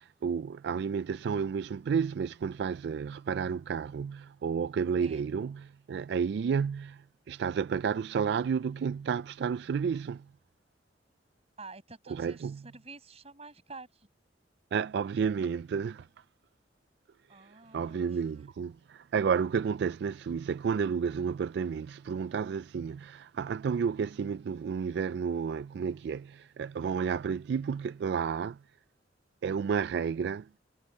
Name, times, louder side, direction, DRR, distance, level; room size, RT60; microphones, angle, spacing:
voice 1, 0.0-10.3 12.1-12.6 14.7-16.1 17.3-28.6 29.4-30.5, right 6 dB, 65° right, 0.3 m, -31 dB
voice 2, 11.6-14.1 17.3-18.1, right 3 dB, 35° right, 8.0 m, -49 dB
head